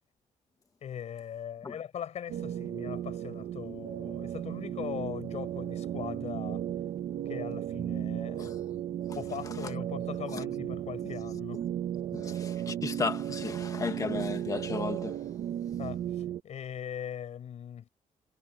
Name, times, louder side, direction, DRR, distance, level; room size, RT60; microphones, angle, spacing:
voice 1, 0.8-6.6 7.3-8.5 9.2-11.6 15.8-17.9, left 9 dB, 60° left, 5.5 m, -40 dB
sound 1, 2.3-16.4, right 11 dB, 75° right, 0.9 m, -35 dB
voice 2, 12.1-15.1, left 4 dB, 25° left, 1.7 m, -34 dB
cardioid pair, 155°, 13 cm